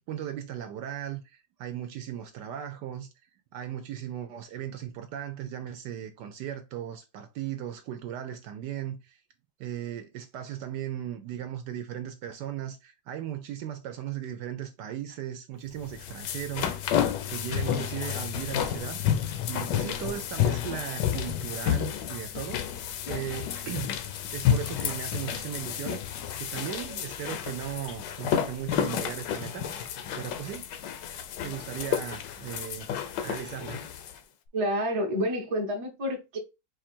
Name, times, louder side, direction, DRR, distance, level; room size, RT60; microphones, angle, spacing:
voice 1, 0.0-3.1 3.5-9.2 9.6-16.9 17.3-19.0 19.5-22.6 23.0-24.0 24.3-26.0 26.4-29.7 30.1-30.7 31.4-32.9 33.2-33.8, right 10 dB, 75° right, 1.0 m, -37 dB
sound 1, 15.8-34.2, left 9 dB, 70° left, 1.1 m, -31 dB
voice 2, 34.5-36.4, equal, 30° right, 0.6 m, -29 dB
4.4 x 2.5 x 4.3 m
omnidirectional pair, 2.1 m